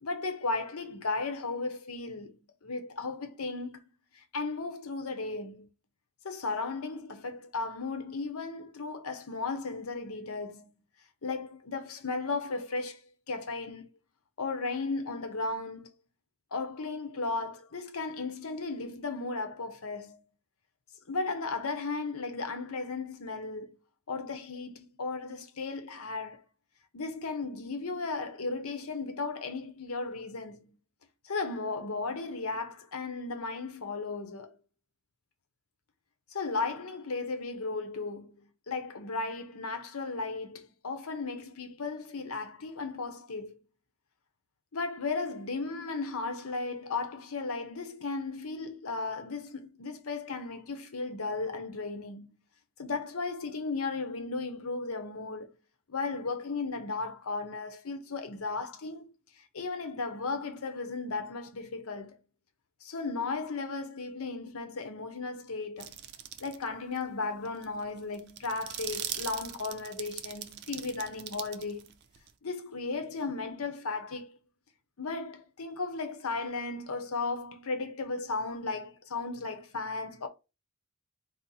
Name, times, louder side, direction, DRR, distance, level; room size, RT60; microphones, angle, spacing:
voice 1, 0.0-3.8 4.3-5.7 6.2-10.7 11.2-13.0 13.3-13.9 14.4-15.9 16.5-20.2 21.1-23.8 24.1-26.4 26.9-30.8 31.2-34.6 36.3-43.6 44.7-52.4 52.8-55.6 55.9-59.1 59.4-62.2 62.8-66.0 66.4-72.0 72.4-74.3 75.0-80.3, left 3 dB, 85° left, 0.8 m, -35 dB
sound 1, 65.8-66.6 67.0-67.1 67.5-72.3, right 10 dB, 50° right, 0.4 m, -40 dB
4.1 x 2.0 x 3.9 m
head